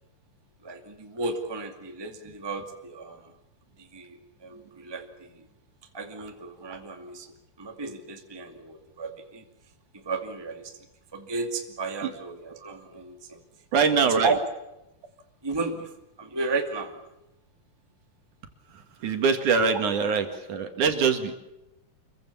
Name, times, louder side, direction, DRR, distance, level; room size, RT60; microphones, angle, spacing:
voice 1, 0.6-3.3 3.8-5.4 5.9-9.4 9.9-10.8 11.1-13.4 14.0-14.4 15.4-15.9 16.2-17.0, right 3 dB, 10° right, 4 dB, 1.8 m, -33 dB
voice 2, 13.7-14.3 19.0-21.3, right 5 dB, 65° right, 6 dB, 3.4 m, -23 dB
26.5 x 23.0 x 7.1 m, 0.91 s
omnidirectional pair, 4.0 m